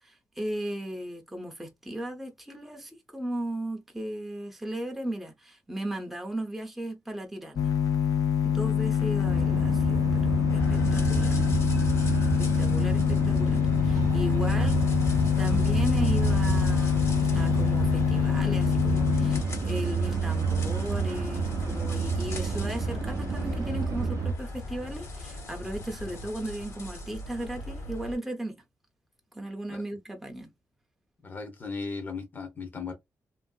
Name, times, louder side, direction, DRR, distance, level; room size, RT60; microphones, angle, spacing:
voice 1, 0.0-7.7 8.4-11.3 12.4-14.8 15.4-28.6 29.3-30.5, right 1 dB, 5° right, 0.6 m, -36 dB
sound 1, 7.6-19.4, left 9 dB, 70° left, 0.4 m, -25 dB
sound 2, 9.3-24.3, right 5 dB, 60° right, 0.4 m, -30 dB
sound 3, 10.5-28.1, left 4 dB, 50° left, 1.3 m, -36 dB
voice 2, 31.2-32.9, left 4 dB, 30° left, 0.8 m, -36 dB
2.9 x 2.7 x 2.3 m
wide cardioid pair, 155°, 6 cm